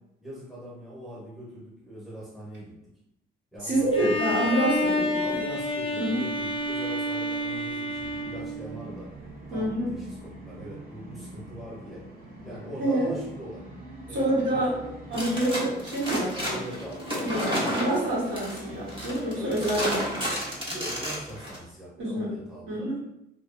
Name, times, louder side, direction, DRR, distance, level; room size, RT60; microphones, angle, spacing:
voice 1, 0.2-2.8 3.5-4.2 5.2-9.1 9.5-12.0 12.4-13.7 14.1-14.9 16.4-18.2 19.4-19.8 20.6-22.9, equal, ahead, -6 dB, 1.0 m, -41 dB
voice 2, 3.6-5.4 6.0-6.2 9.5-9.9 12.8-13.1 14.1-14.7 15.1-16.6 17.2-20.0 22.0-22.3 22.7-23.0, right 1 dB, 70° right, -7 dB, 1.2 m, -27 dB
Bowed string instrument, 3.9-9.0, left 1 dB, 30° left, 0.5 m, -29 dB
Musical instrument, 7.9-21.7, right 1 dB, 45° right, 1.0 m, -45 dB
sound 1, 15.1-21.6, equal, 25° right, 0.9 m, -31 dB
2.5 x 2.3 x 2.5 m, 0.84 s
cardioid pair, 90°, 20 cm